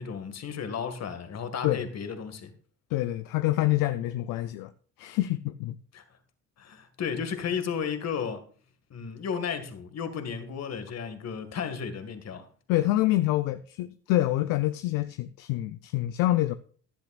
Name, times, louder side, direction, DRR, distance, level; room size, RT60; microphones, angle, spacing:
voice 1, 0.0-2.5 5.9-6.0 6.6-8.4 8.9-12.5, left 6 dB, 45° left, 2.0 m, -33 dB
voice 2, 2.9-4.7 5.0-5.8 12.7-16.5, left 16 dB, 65° left, 0.7 m, -26 dB
15.0 x 10.5 x 2.5 m
hypercardioid pair, 70°, 36 cm